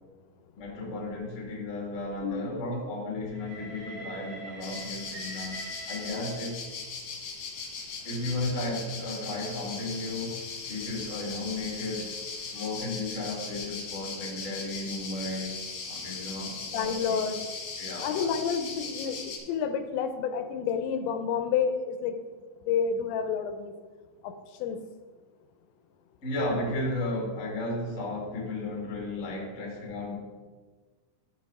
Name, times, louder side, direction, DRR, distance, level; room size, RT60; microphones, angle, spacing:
voice 1, 0.6-6.6 8.0-10.4 10.7-12.1 12.5-15.6 15.9-17.2 17.8-18.3 26.2-30.1, left 2 dB, 30° left, -2 dB, 1.3 m, -34 dB
Train, 3.3-6.7 7.6-12.8, right 2 dB, 60° right, 4.4 m, -47 dB
sound 1, 4.6-19.4, left 4 dB, 55° left, 2.3 m, -39 dB
voice 2, 16.7-17.4 18.0-22.1 22.7-23.7 24.2-24.3 24.6-24.8, left 6 dB, 85° left, 8 dB, 3.0 m, -29 dB
12.5 x 5.5 x 4.9 m, 1.4 s
omnidirectional pair, 5.1 m